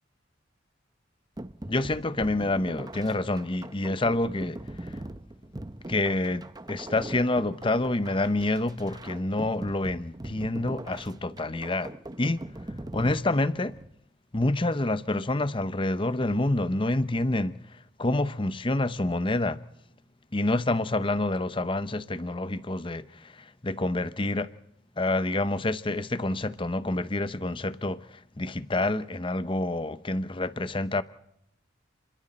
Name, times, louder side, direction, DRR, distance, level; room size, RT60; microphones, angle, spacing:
sound 1, 1.4-13.9, right 1 dB, 20° right, 0.7 m, -41 dB
voice 1, 1.7-5.0 5.9-12.4 12.9-13.8 14.3-19.6 20.3-24.5 25.0-31.0, left 2 dB, 25° left, 0.8 m, -28 dB
30.0 x 22.0 x 4.3 m
head